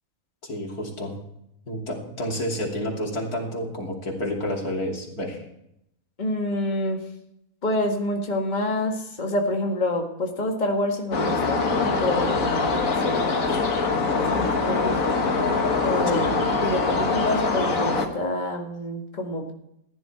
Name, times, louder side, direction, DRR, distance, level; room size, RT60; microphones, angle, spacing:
voice 1, 0.4-1.1 1.7-5.4 16.1-16.2, left 1 dB, 85° left, -1 dB, 3.4 m, -30 dB
voice 2, 6.2-7.0 7.6-13.5 14.1-15.0 15.8-16.3 16.6-19.5, left 1 dB, 30° left, 2 dB, 1.8 m, -27 dB
sound 1, 11.1-18.1, left 4 dB, 65° left, 1.8 m, -23 dB
15.0 x 10.5 x 4.6 m, 0.78 s
omnidirectional pair, 1.6 m